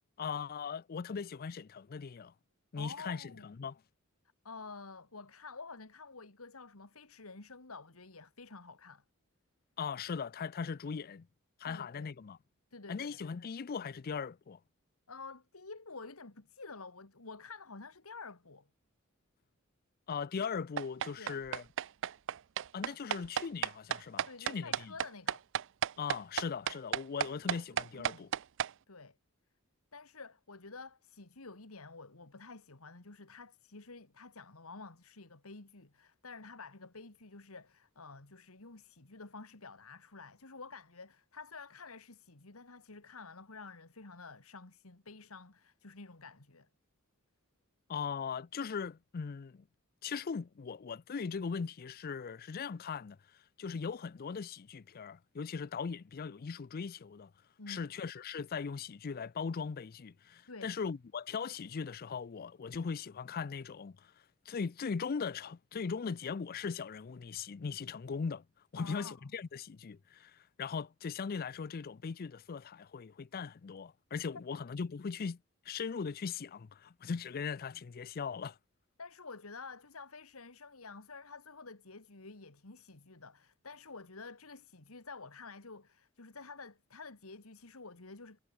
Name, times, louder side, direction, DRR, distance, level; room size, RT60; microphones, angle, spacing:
voice 1, 0.2-2.3 2.7-3.8 9.8-11.3 11.6-12.4 12.9-14.6 20.1-21.6 22.7-24.9 26.0-28.3 47.9-49.6 50.0-53.2 53.6-57.3 57.7-64.1 64.5-68.4 68.7-75.4 75.7-78.6, left 5 dB, 45° left, 0.4 m, -39 dB
voice 2, 2.8-3.5 4.4-9.0 11.6-12.1 12.7-13.2 15.1-18.7 21.2-21.4 24.3-25.4 28.9-29.2 29.9-46.7 57.6-57.9 60.5-60.7 68.8-69.2 79.0-88.4, left 4 dB, 80° left, 2.1 m, -50 dB
sound 1, 20.8-28.7, right 9 dB, 60° right, 0.5 m, -33 dB
head